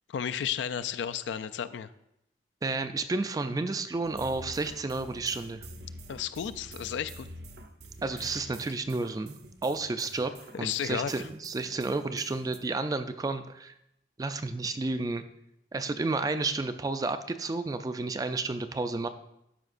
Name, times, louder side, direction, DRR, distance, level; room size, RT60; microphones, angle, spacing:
voice 1, 0.1-1.9 6.1-7.3 8.2-8.4 10.5-11.3, left 8 dB, 80° left, 13 dB, 0.3 m, -33 dB
voice 2, 2.6-5.7 8.0-10.3 10.6-13.7 14.2-15.2 15.7-19.1, right 3 dB, 20° right, 10 dB, 0.3 m, -31 dB
sound 1, 4.0-12.6, right 1 dB, 65° right, 0.7 m, -47 dB
12.5 x 5.2 x 2.5 m, 0.82 s
head